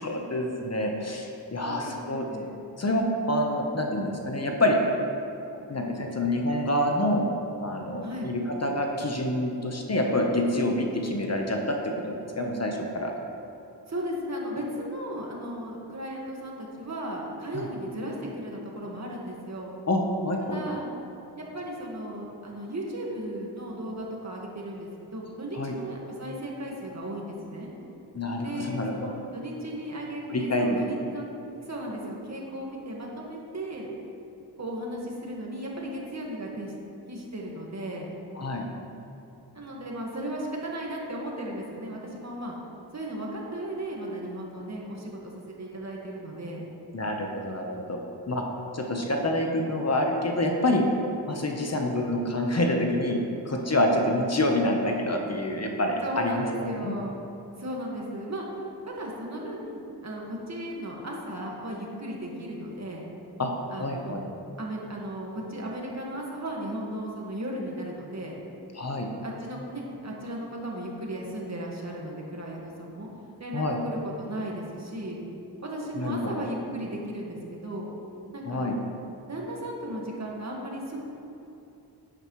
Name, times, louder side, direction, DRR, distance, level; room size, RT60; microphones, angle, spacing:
voice 1, 0.0-2.3 2.8-4.8 5.7-7.2 7.6-13.1 17.5-17.7 19.9-20.6 25.5-25.7 28.1-28.9 30.3-30.8 38.4-38.7 46.9-48.0 48.3-48.4 48.7-50.8 51.3-53.2 53.4-56.9 63.4-64.2 68.7-69.1 73.5-73.8 76.0-76.2 78.5-78.8, left 1 dB, 40° left, 1 dB, 1.2 m, -27 dB
voice 2, 1.6-2.5 8.0-8.3 13.9-19.7 20.4-20.9 21.4-27.7 28.4-31.3 31.6-33.9 34.6-36.7 37.1-38.1 39.5-42.6 42.9-46.6 56.0-57.2 57.6-58.5 58.8-63.1 63.7-64.2 64.6-68.4 68.8-68.9 69.2-73.1 73.4-75.2 75.6-77.9 78.3-78.7 79.3-81.0, right 1 dB, 40° right, -2 dB, 1.9 m, -36 dB
10.0 x 9.0 x 3.3 m, 2.8 s
cardioid pair, 60°, 41 cm